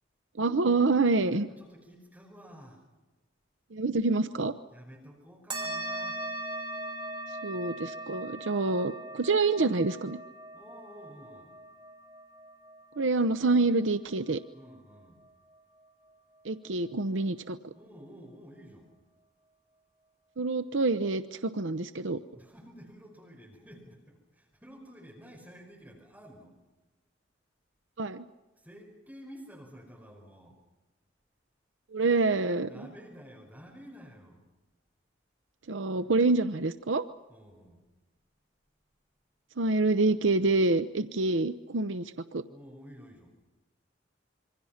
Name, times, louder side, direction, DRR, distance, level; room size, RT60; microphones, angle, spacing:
voice 1, 0.4-1.5 3.7-4.5 7.4-10.2 13.0-14.4 16.4-17.7 20.4-22.2 28.0-28.3 31.9-32.9 35.7-37.0 39.6-42.4, right 3 dB, 80° right, 10 dB, 0.8 m, -27 dB
voice 2, 1.2-2.8 4.7-6.2 10.5-11.6 14.5-15.2 17.7-18.9 22.3-26.5 28.6-30.6 32.6-34.4 37.3-37.8 42.5-43.3, equal, 10° right, -1 dB, 5.3 m, -51 dB
sound 1, 5.5-14.4, right 2 dB, 25° right, 4.2 m, -40 dB
27.0 x 24.5 x 5.8 m, 1.2 s
head